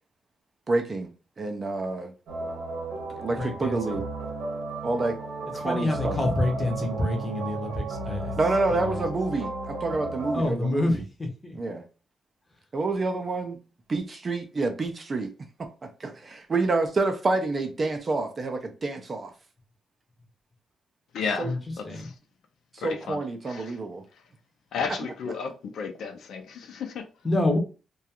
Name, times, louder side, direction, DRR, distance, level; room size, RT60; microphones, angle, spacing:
voice 1, 0.7-1.1 1.4-2.1 3.2-4.1 4.8-5.2 5.5-6.2 8.4-11.0 11.6-11.9 12.7-13.6 13.9-15.3 15.6-19.3 21.4-21.5 22.7-24.0, right 3 dB, 25° right, 0.4 m, -28 dB
sound 1, 2.3-10.5, right 2 dB, 90° right, 0.8 m, -34 dB
voice 2, 3.4-4.0 5.6-8.3 8.7-9.0 10.3-11.6 21.4-21.6 21.8-22.1 27.2-27.6, left 1 dB, 10° left, 0.6 m, -27 dB
voice 3, 21.1-22.1 22.8-23.2 23.5-23.8 24.1-24.2 24.7-27.1, left 5 dB, 70° left, 0.4 m, -33 dB
2.4 x 2.3 x 2.8 m
wide cardioid pair, 180°, 0 cm